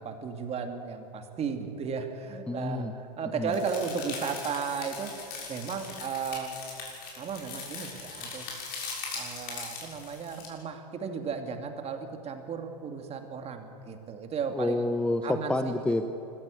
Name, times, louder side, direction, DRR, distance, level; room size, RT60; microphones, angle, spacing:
voice 1, 0.0-6.5 7.2-8.6 9.1-14.9 15.2-15.6, right 5 dB, 30° right, 5 dB, 2.6 m, -35 dB
voice 2, 2.5-2.9 3.4-3.5 14.5-16.1, left 2 dB, 5° left, 8 dB, 0.9 m, -28 dB
sound 1, 3.5-10.5, left 4 dB, 45° left, 6.8 m, -40 dB
25.0 x 15.0 x 8.5 m, 2.9 s
hypercardioid pair, 95°, 21 cm